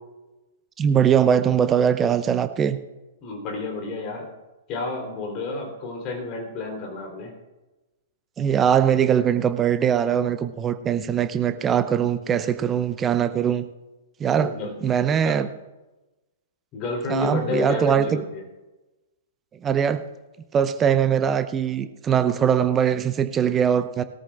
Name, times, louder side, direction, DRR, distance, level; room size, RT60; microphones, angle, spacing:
voice 1, 0.8-2.8 8.4-13.7 14.2-14.5 14.8-15.5 17.1-18.2 19.6-20.0 20.5-24.0, right 8 dB, 20° right, 11 dB, 0.7 m, -21 dB
voice 2, 3.2-4.3 4.7-7.3 14.4-14.7 15.1-15.4 16.7-18.4, left 3 dB, 30° left, 1 dB, 3.5 m, -30 dB
20.5 x 13.5 x 2.4 m, 1.1 s
figure-of-eight pair, 110°, 0 cm